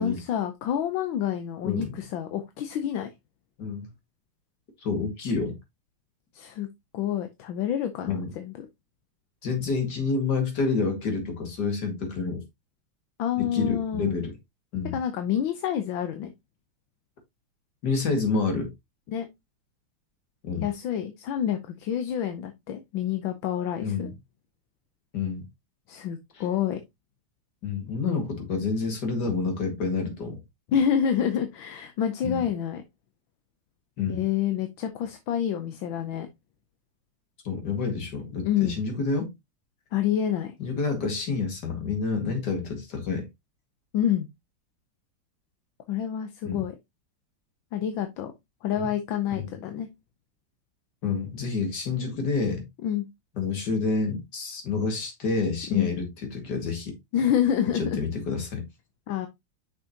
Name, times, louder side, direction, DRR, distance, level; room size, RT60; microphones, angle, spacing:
voice 1, 0.0-3.1 6.3-6.7 6.9-8.7 13.2-14.2 14.9-16.3 19.1-19.3 20.6-24.1 25.9-26.8 30.7-32.8 34.1-36.3 38.4-38.8 39.9-40.5 43.9-44.3 45.9-46.7 47.7-48.3 48.6-49.9 52.8-53.1 55.7-55.9 57.1-58.0 59.1-59.3, left 9 dB, 75° left, 1.5 m, -28 dB
voice 2, 4.8-5.6 8.1-8.3 9.4-12.4 13.4-14.3 14.7-15.0 17.8-18.7 20.4-20.7 23.8-24.1 25.1-25.4 27.6-30.4 32.2-32.4 34.0-34.2 37.4-39.3 40.6-43.3 46.4-46.6 48.8-48.9 49.4-49.5 51.0-52.7 53.4-57.0 57.7-58.7, left 4 dB, 55° left, 2.5 m, -28 dB
6.3 x 6.1 x 2.8 m
omnidirectional pair, 2.3 m